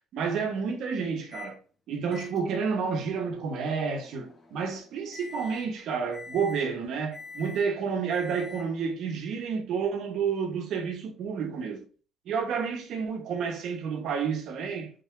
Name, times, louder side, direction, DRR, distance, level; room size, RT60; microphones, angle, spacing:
voice 1, 0.1-1.6 1.9-11.8 12.3-14.9, right 6 dB, 70° right, 1.0 m, -30 dB
Microwave oven, 1.3-1.6 2.1-8.9, left 4 dB, 30° left, 0.8 m, -47 dB
3.7 x 3.6 x 2.4 m
cardioid pair, 130°, 0 cm